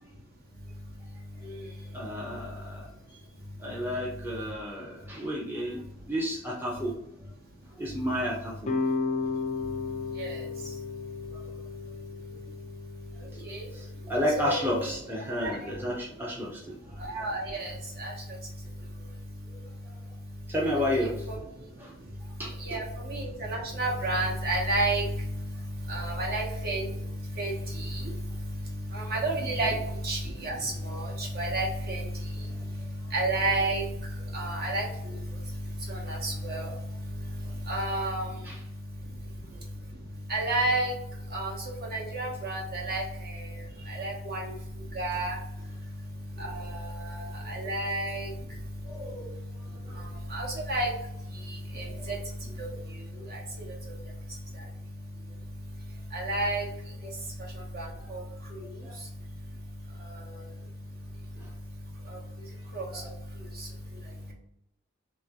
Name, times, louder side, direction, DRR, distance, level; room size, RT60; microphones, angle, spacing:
voice 1, 1.9-3.2 3.6-6.9 7.8-8.8 11.3-11.5 13.3-17.0 19.5-19.9 20.5-21.3 21.8-21.9 22.4-22.8 29.4-29.7 31.2-31.3 32.5-32.6 33.0-33.1 36.6-36.7 37.4-37.5 37.9-38.0 38.4-38.6 43.7-44.0 46.4-46.5 47.6-47.7 48.8-49.3 49.6-50.0 51.7-52.6 53.2-53.3 57.0-57.1 58.0-58.1 58.8-59.0 61.4-61.5 62.9-63.1, equal, 10° right, -3 dB, 0.7 m, -33 dB
sound 1, 8.6-13.8, left 4 dB, 35° left, 0.5 m, -34 dB
voice 2, 14.4-14.9 17.1-17.7 18.0-18.1 21.0-21.4 22.7-22.8 23.1-25.0 25.9-26.9 27.4-27.6 27.9-28.0 28.9-29.7 30.0-32.0 33.1-33.8 34.3-34.8 35.9-36.7 37.7-38.3 40.3-40.9 41.3-41.5 41.9-43.0 44.0-44.4 45.0-45.3 46.4-46.7 47.5-48.3 50.3-50.9 51.8-52.2 56.1-56.7 57.7-57.8 58.1-58.2 62.7-62.8, right 2 dB, 50° right, -2 dB, 1.1 m, -30 dB
3.1 x 3.0 x 3.6 m, 0.79 s
head